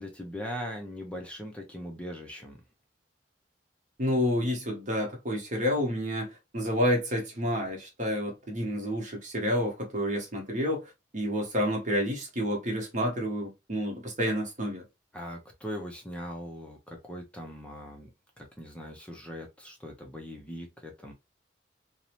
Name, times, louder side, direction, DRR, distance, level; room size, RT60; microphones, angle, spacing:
voice 1, 0.0-2.5 15.1-18.1 18.4-21.1, equal, 5° left, 0.4 m, -40 dB
voice 2, 4.0-6.3 6.5-14.8, equal, 45° right, 0.9 m, -29 dB
2.6 x 2.0 x 2.8 m
head